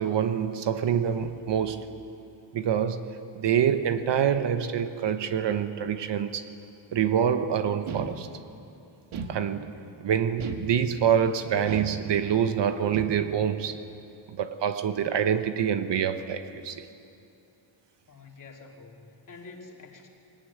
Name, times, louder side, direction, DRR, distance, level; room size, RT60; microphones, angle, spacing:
voice 1, 0.0-1.9 2.5-3.0 3.3-6.5 6.9-8.3 9.3-9.7 10.0-13.8 14.4-16.9, right 8 dB, 55° right, 9 dB, 1.1 m, -26 dB
sound 1, 7.9-8.6 9.1-9.9 10.4-11.2 11.7-12.5 12.9-13.5, right 5 dB, 75° right, 1.7 m, -37 dB
voice 2, 18.1-20.1, left 3 dB, 40° left, 1 dB, 2.6 m, -47 dB
22.0 x 18.5 x 9.5 m, 2.7 s
wide cardioid pair, 165°, 49 cm